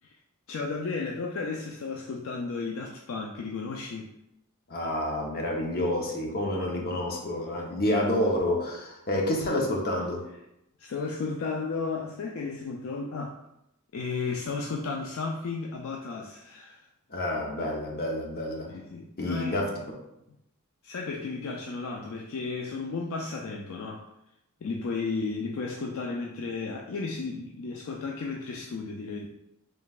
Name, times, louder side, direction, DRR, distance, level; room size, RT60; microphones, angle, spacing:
voice 1, 0.5-4.1 9.2-9.3 10.8-13.4 13.9-16.9 18.7-19.6 20.8-24.1 24.6-29.3, left 4 dB, 65° left, 1 dB, 0.4 m, -34 dB
voice 2, 4.7-10.2 17.1-18.7 19.2-20.0, left 1 dB, 45° left, 0 dB, 0.8 m, -29 dB
5.3 x 3.1 x 2.4 m, 0.85 s
head